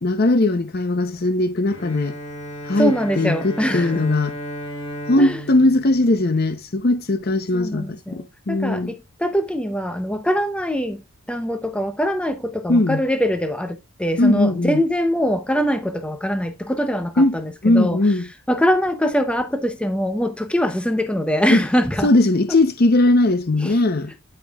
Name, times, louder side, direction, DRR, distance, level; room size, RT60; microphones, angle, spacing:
voice 1, 0.0-2.2 2.6-4.4 5.1-8.9 12.7-13.0 14.2-14.8 17.2-17.4 17.6-18.2 21.5-21.6 22.0-24.1, left 2 dB, 45° left, 0.7 m, -19 dB
Bowed string instrument, 1.6-7.1, equal, 70° left, 2.4 m, -35 dB
voice 2, 2.7-4.0 5.2-5.4 7.5-11.0 11.3-18.0 18.5-22.1 23.6-23.8, equal, 5° left, 0.7 m, -23 dB
12.5 x 5.3 x 2.3 m
head